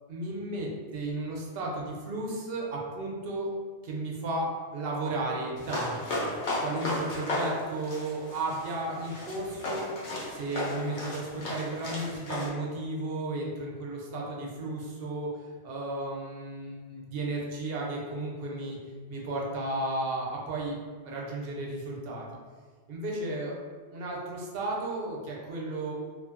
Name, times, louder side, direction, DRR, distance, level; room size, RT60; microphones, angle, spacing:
voice 1, 0.1-3.5 3.8-6.3 6.6-9.9 10.3-15.3 15.6-18.8 19.1-20.8 21.0-22.2 22.9-23.6 23.9-25.9, right 2 dB, 65° right, -2 dB, 0.8 m, -34 dB
sound 1, 5.6-12.5, left 1 dB, 85° left, 1.0 m, -34 dB
2.6 x 2.5 x 2.4 m, 1.5 s
omnidirectional pair, 1.1 m